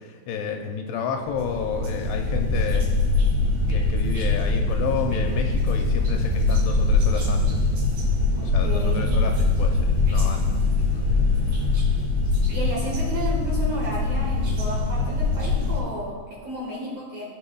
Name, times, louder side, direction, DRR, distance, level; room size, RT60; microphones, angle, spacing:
voice 1, 0.3-2.9 3.7-7.6 8.4-10.4, left 6 dB, 85° left, 3 dB, 2.6 m, -30 dB
sound 1, 1.3-15.8, left 3 dB, 40° right, 2.8 m, -23 dB
sound 2, 1.3-13.5, right 2 dB, 80° right, 2.6 m, -37 dB
voice 2, 8.3-9.2 12.5-17.2, right 1 dB, 60° right, -5 dB, 2.1 m, -32 dB
15.5 x 5.8 x 2.3 m, 1.5 s
omnidirectional pair, 5.0 m